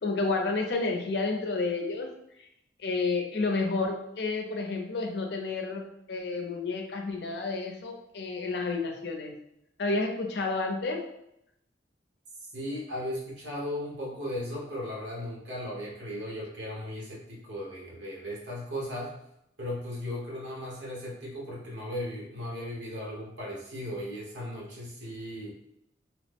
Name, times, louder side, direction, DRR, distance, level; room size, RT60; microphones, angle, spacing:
voice 1, 0.0-2.1 2.8-9.3 9.8-11.0, left 3 dB, 65° left, 3 dB, 0.5 m, -30 dB
voice 2, 12.4-19.1 19.6-25.5, left 1 dB, 85° right, -4 dB, 1.1 m, -36 dB
2.9 x 2.0 x 3.4 m, 0.80 s
head